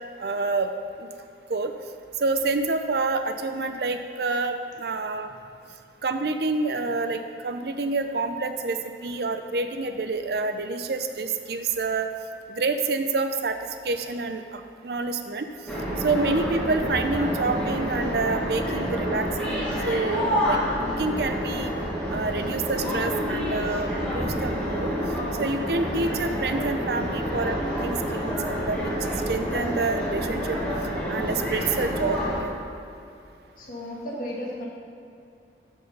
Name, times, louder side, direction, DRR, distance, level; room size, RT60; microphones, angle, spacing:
voice 1, 0.2-0.7 1.0-1.1 1.5-1.7 2.2-5.3 6.0-12.1 12.5-15.5 16.0-19.6 19.8-21.7 22.1-24.9 25.4-27.6 27.8-28.9 29.3-30.6 31.1-32.5, right 3 dB, 60° right, 7 dB, 0.5 m, -28 dB
sound 1, 15.7-32.4, equal, 5° left, 1.6 m, -28 dB
voice 2, 33.6-34.7, left 1 dB, 50° left, -3 dB, 1.7 m, -34 dB
12.5 x 4.6 x 5.4 m, 2.6 s
head